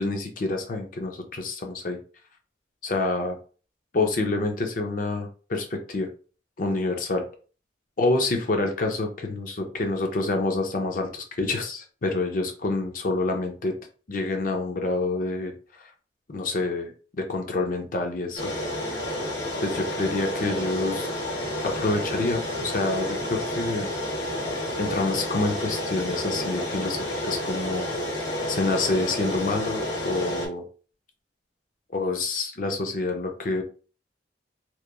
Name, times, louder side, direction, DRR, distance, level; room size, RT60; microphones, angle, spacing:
voice 1, 0.0-2.0 2.8-3.4 3.9-6.1 6.6-7.2 8.0-13.7 14.1-15.5 16.3-16.9 17.3-18.5 19.6-21.1 21.6-23.9 24.8-27.9 28.5-30.6 31.9-33.6, left 2 dB, 45° left, 4 dB, 0.5 m, -27 dB
sound 1, 18.4-30.5, left 1 dB, 70° left, 1.0 m, -30 dB
2.9 x 2.3 x 2.2 m, 0.38 s
head